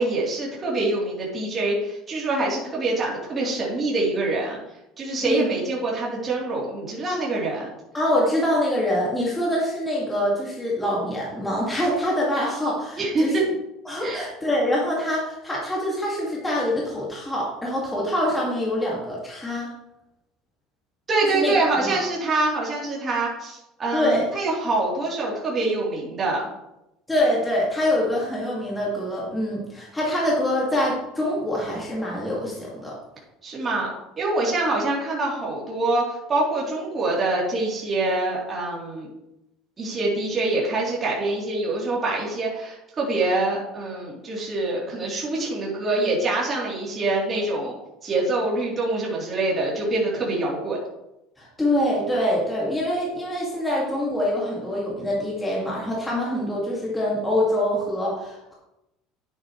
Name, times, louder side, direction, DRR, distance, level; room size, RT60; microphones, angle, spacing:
voice 1, 0.0-4.6 5.0-7.7 13.0-13.4 14.0-14.3 21.1-26.5 33.4-33.9 34.2-39.1 39.8-47.8 48.0-50.8, right 2 dB, 25° right, -5 dB, 3.5 m, -25 dB
voice 2, 7.9-13.4 13.9-19.7 21.3-21.5 23.9-24.3 27.1-32.9 51.4-58.5, left 1 dB, 10° left, -5 dB, 2.3 m, -25 dB
10.5 x 8.9 x 3.3 m, 0.90 s
cardioid pair, 150°, 0 cm